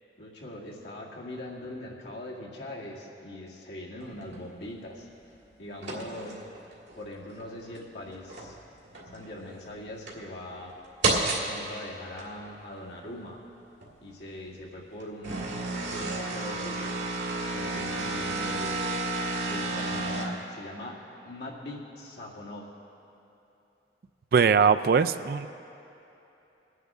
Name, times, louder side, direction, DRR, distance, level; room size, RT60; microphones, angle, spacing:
voice 1, 0.2-5.1 5.6-8.6 9.1-10.7 11.1-13.4 14.0-15.5 15.9-16.9 17.5-18.9 19.5-21.0 21.3-22.7, left 1 dB, 80° left, -4 dB, 2.0 m, -41 dB
sound 1, 4.0-4.4 5.8-7.0 7.4-7.5 8.1-8.6 8.9-9.6 10.1-10.2 11.0-11.5 12.2-12.3 13.8-13.9 15.0-20.2, right 2 dB, 90° right, 2.0 m, -31 dB
voice 2, 24.3-25.5, right 6 dB, 55° right, 12 dB, 0.3 m, -21 dB
21.5 x 9.3 x 3.6 m, 3.0 s
head